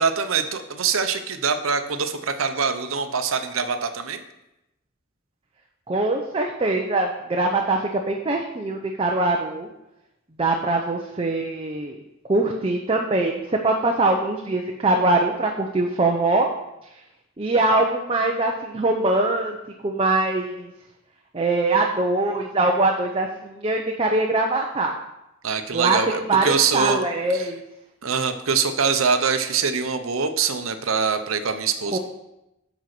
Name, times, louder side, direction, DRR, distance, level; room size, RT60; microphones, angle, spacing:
voice 1, 0.0-4.2 25.4-27.0 27.3-27.5 28.0-32.0, right 5 dB, 85° right, 8 dB, 0.8 m, -24 dB
voice 2, 5.9-9.7 10.4-12.0 12.3-16.5 17.4-19.6 19.8-20.7 21.3-24.9 25.7-26.5 26.7-27.6 31.9-32.0, right 2 dB, 25° right, 1 dB, 0.7 m, -22 dB
7.7 x 5.3 x 6.0 m, 0.91 s
head